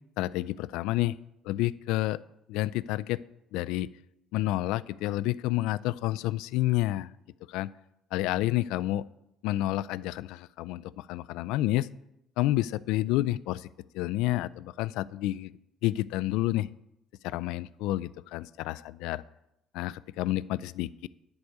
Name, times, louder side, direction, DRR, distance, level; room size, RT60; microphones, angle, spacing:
voice 1, 0.2-1.2 1.4-2.2 2.5-3.2 3.5-3.9 4.3-7.1 7.5-7.7 8.1-9.0 9.4-11.9 12.4-13.7 13.9-15.5 15.8-16.7 17.2-19.2 19.7-21.1, left 16 dB, 90° left, 18 dB, 0.3 m, -29 dB
10.5 x 4.8 x 8.0 m, 0.83 s
cardioid pair, 145°, 0 cm